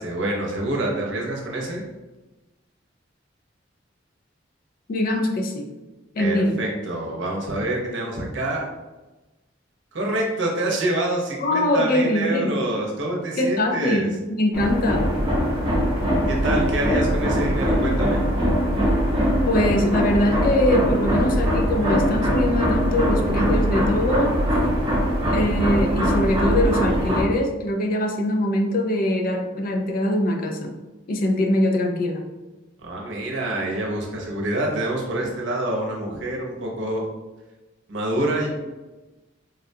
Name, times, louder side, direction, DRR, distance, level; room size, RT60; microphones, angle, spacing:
voice 1, 0.0-1.8 6.2-8.7 9.9-14.1 16.3-18.2 32.8-37.0 37.9-38.5, right 1 dB, 70° right, -1 dB, 0.7 m, -26 dB
voice 2, 4.9-5.7 6.2-6.6 11.4-12.6 13.4-15.1 19.5-24.4 25.2-30.7 31.1-32.2, left 1 dB, 45° left, 3 dB, 0.4 m, -22 dB
sound 1, 14.5-27.2, equal, 25° right, 0.8 m, -21 dB
3.6 x 2.2 x 2.7 m, 1.1 s
head